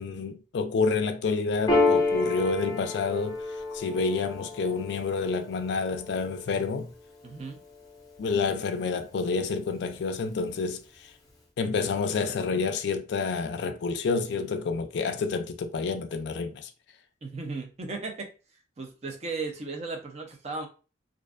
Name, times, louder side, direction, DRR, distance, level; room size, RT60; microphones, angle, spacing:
voice 1, 0.0-3.4 3.7-6.9 8.2-10.8 11.6-16.7, left 4 dB, 65° left, 0.3 m, -28 dB
Piano, 1.7-8.6, left 3 dB, 20° left, 0.6 m, -30 dB
voice 2, 7.2-7.6 17.2-18.3 18.8-20.7, right 3 dB, 35° right, 0.4 m, -35 dB
2.4 x 2.1 x 2.4 m
head